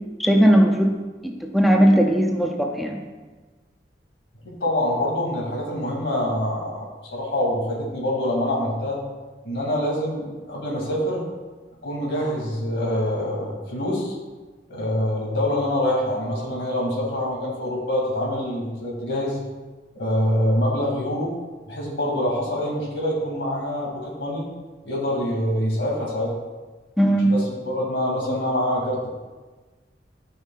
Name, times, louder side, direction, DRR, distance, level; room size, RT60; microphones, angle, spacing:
voice 1, 0.2-1.0 1.2-3.0 27.0-27.3, equal, ahead, 1 dB, 0.5 m, -18 dB
voice 2, 4.4-6.8 7.1-9.0 9.4-11.2 11.8-14.1 14.7-19.4 20.0-21.3 21.7-24.5 24.8-26.3 27.3-29.1, left 1 dB, 80° left, -3 dB, 2.5 m, -25 dB
12.5 x 5.5 x 2.5 m, 1.3 s
head